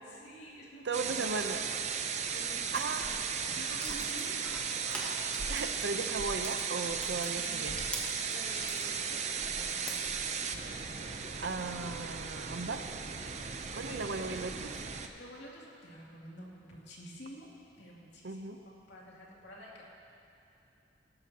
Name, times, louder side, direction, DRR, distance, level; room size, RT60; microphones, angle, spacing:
voice 1, 0.0-1.8 2.2-5.5 7.2-7.8 8.3-10.6 13.4-14.6 15.1-17.5 17.8-19.8, equal, 80° left, -4 dB, 2.6 m, -50 dB
voice 2, 0.8-1.6 2.7-3.1 5.5-7.8 11.4-12.9 13.7-14.7 18.2-18.6, right 4 dB, 85° right, 7 dB, 0.7 m, -36 dB
sound 1, 0.9-15.1, right 6 dB, 40° right, 0.6 m, -36 dB
sound 2, 2.7-5.8 6.1-8.9 9.4-10.5, equal, 5° left, 1.3 m, -44 dB
18.5 x 12.5 x 2.9 m, 2.7 s
head